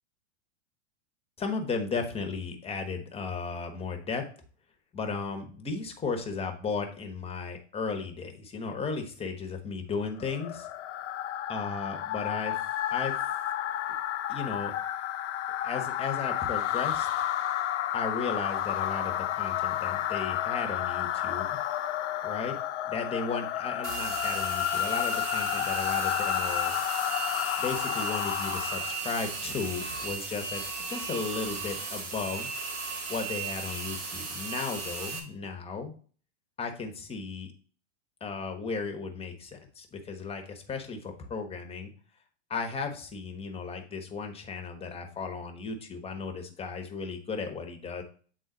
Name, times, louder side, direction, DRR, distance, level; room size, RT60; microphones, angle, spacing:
voice 1, 1.4-4.2 4.9-10.7 11.5-12.6 12.9-13.1 14.3-14.7 15.6-17.1 17.9-21.6 22.2-22.6 22.8-26.8 27.6-32.5 33.1-35.9 36.6-37.5 38.2-41.9 42.5-48.0, left 4 dB, 15° left, 4 dB, 1.2 m, -35 dB
sound 1, 10.2-29.1, left 11 dB, 80° left, 0.8 m, -31 dB
sound 2, 23.8-35.2, right 4 dB, 80° right, 2.0 m, -36 dB
8.2 x 3.9 x 3.9 m, 0.42 s
hypercardioid pair, 125°, 36 cm